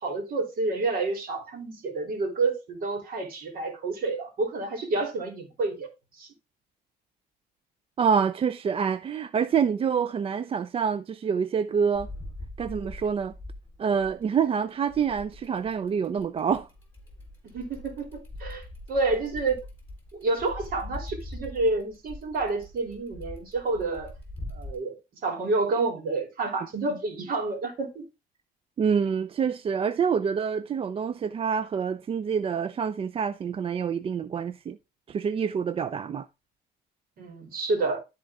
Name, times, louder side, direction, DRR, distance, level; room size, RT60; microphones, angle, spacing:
voice 1, 0.0-5.9 6.2-6.3 17.4-19.6 20.1-24.1 24.5-24.9 25.2-28.1 37.2-38.0, right 3 dB, 60° right, 3.4 m, -29 dB
voice 2, 8.0-12.1 12.6-13.3 13.8-16.7 28.8-34.8 35.1-36.3, right 6 dB, 35° right, 0.4 m, -26 dB
sound 1, 11.9-14.4 14.9-24.8, left 1 dB, 15° left, 3.7 m, -42 dB
13.0 x 4.4 x 3.6 m
cardioid pair, 110°, 17 cm